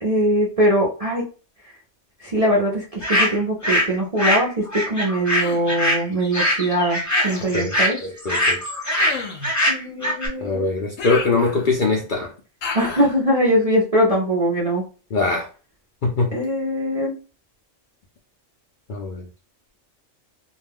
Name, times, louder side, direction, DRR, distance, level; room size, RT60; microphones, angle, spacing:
voice 1, 0.0-1.2 2.2-8.0 9.7-10.7 12.7-14.8 16.3-17.1, equal, 45° right, -3 dB, 0.5 m, -21 dB
sound 1, 3.0-3.9 4.2-10.3, equal, 15° left, 0.7 m, -22 dB
Human voice, 5.4-5.7 7.1-7.6 9.0-9.5 11.0-11.9 12.6-13.1, left 5 dB, 85° left, 1.0 m, -31 dB
voice 2, 8.0-8.6 10.4-12.3 15.1-15.5 16.0-16.3 18.9-19.2, left 3 dB, 60° left, 0 dB, 0.5 m, -22 dB
2.4 x 2.2 x 3.4 m, 0.36 s
omnidirectional pair, 1.3 m